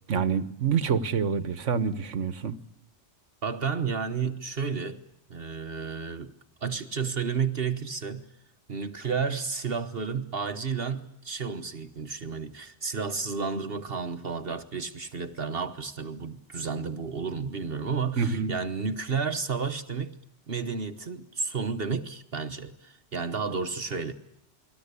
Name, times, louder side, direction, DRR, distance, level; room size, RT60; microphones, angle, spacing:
voice 1, 0.1-2.6 18.2-18.5, right 6 dB, 85° right, 1.6 m, -27 dB
voice 2, 3.4-5.0 5.3-6.3 6.6-8.3 8.7-20.2 20.5-24.1, right 5 dB, 55° right, 1.4 m, -31 dB
29.0 x 21.5 x 8.3 m
omnidirectional pair, 1.2 m